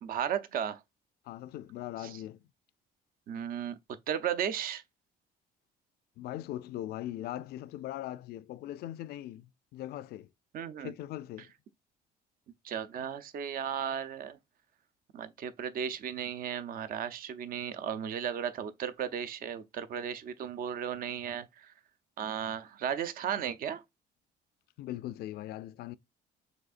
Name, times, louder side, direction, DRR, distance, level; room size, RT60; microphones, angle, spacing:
voice 1, 0.0-0.8 3.3-3.8 4.1-4.8 10.5-10.9 12.6-14.4 15.1-21.7 22.2-23.8, right 8 dB, 55° right, 0.7 m, -35 dB
voice 2, 1.3-2.4 6.2-10.3 10.8-11.5 24.8-26.0, left 13 dB, 70° left, 0.4 m, -40 dB
6.4 x 2.8 x 2.4 m
cardioid pair, 110°, 17 cm